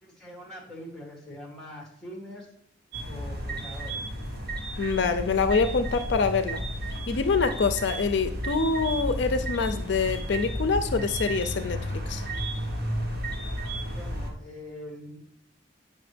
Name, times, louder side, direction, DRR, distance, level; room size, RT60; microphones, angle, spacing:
voice 1, 0.0-2.5 3.1-4.0 13.9-15.2, left 1 dB, ahead, -2 dB, 2.1 m, -43 dB
sound 1, 2.9-14.3, equal, 55° right, 1.2 m, -32 dB
voice 2, 4.8-6.6 7.1-12.2, left 4 dB, 70° left, 9 dB, 0.5 m, -25 dB
8.8 x 5.5 x 3.3 m, 0.74 s
head